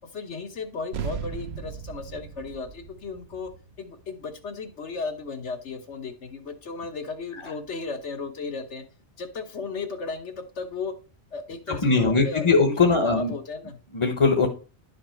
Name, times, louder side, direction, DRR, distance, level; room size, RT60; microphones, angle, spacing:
voice 1, 0.1-3.5 3.8-8.8 9.2-10.9 11.3-13.8, left 4 dB, 75° left, 7 dB, 1.5 m, -35 dB
sound 1, 0.9-5.7, right 7 dB, 65° right, 1.0 m, -38 dB
voice 2, 11.7-13.3 13.9-14.5, left 4 dB, 25° left, 4 dB, 0.9 m, -20 dB
11.0 x 5.1 x 4.4 m, 0.37 s
omnidirectional pair, 1.2 m